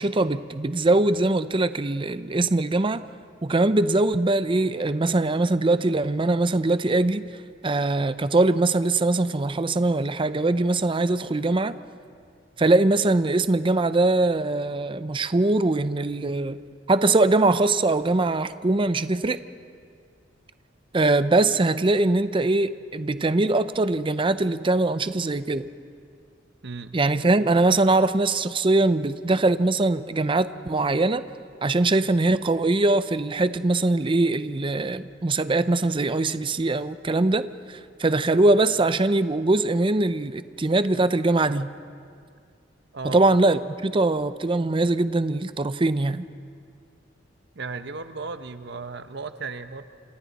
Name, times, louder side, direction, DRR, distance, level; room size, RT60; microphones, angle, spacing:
voice 1, 0.0-3.0 3.4-7.3 7.6-11.8 12.6-16.6 16.9-19.4 20.9-25.7 26.9-31.2 31.6-41.7 43.0-46.3, right 2 dB, 25° right, 13 dB, 0.6 m, -22 dB
voice 2, 47.5-49.8, right 4 dB, 65° right, 10 dB, 0.9 m, -35 dB
29.0 x 27.0 x 4.1 m, 2.2 s
head